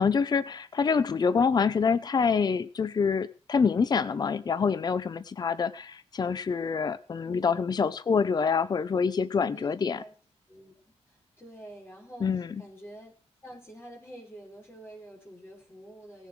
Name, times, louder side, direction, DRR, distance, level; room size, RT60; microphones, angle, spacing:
voice 1, 0.0-10.0 12.2-12.5, left 5 dB, 35° left, 14 dB, 0.7 m, -26 dB
voice 2, 7.2-7.8 9.5-10.1 10.5-13.1 13.4-16.3, right 1 dB, 20° left, -2 dB, 6.2 m, -48 dB
18.0 x 7.2 x 6.2 m, 0.39 s
wide cardioid pair, 125°, 11 cm